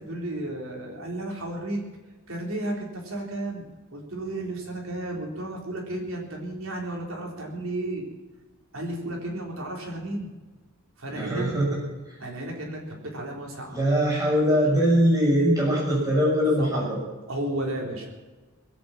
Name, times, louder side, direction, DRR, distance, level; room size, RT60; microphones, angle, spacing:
voice 1, 0.0-1.8 2.3-3.7 3.9-8.1 8.7-10.3 11.0-11.5 12.2-13.8 16.6-16.8 17.3-18.1, right 1 dB, 70° right, 0 dB, 3.9 m, -33 dB
voice 2, 11.1-12.2 13.7-17.0, equal, 15° right, -4 dB, 6.5 m, -22 dB
20.5 x 8.8 x 7.4 m, 1.2 s
head